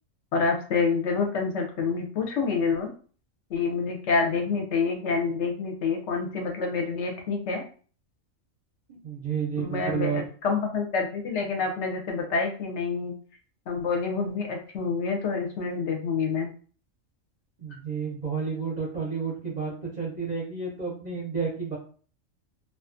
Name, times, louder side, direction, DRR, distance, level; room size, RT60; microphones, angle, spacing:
voice 1, 0.3-2.9 3.5-7.6 9.6-13.1 13.7-16.5, left 4 dB, 70° left, 2 dB, 0.8 m, -27 dB
voice 2, 8.9-10.2 17.6-21.8, right 5 dB, 45° right, -3 dB, 0.6 m, -31 dB
2.4 x 2.2 x 2.5 m, 0.42 s
omnidirectional pair, 1.4 m